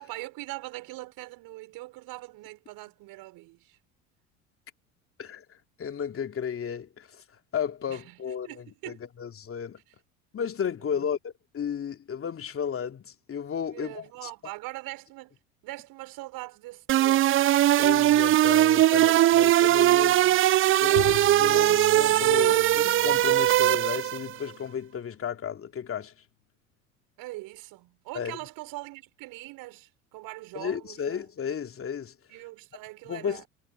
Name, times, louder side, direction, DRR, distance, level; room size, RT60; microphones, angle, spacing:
voice 1, 0.0-3.8 7.9-9.0 10.9-11.1 13.6-15.4 15.6-17.6 18.8-20.7 27.2-31.2 32.3-33.5, right 20 dB, 55° right, 5.8 m, -42 dB
voice 2, 5.2-7.2 7.5-9.8 10.3-14.3 17.8-20.3 20.8-26.1 28.1-28.4 30.5-32.2 33.1-33.5, left 7 dB, 30° left, 2.8 m, -33 dB
sound 1, 16.9-24.3, right 14 dB, 30° right, 0.6 m, -20 dB
Bowed string instrument, 21.0-25.2, left 21 dB, 55° left, 1.8 m, -40 dB
hypercardioid pair, 70°, 41 cm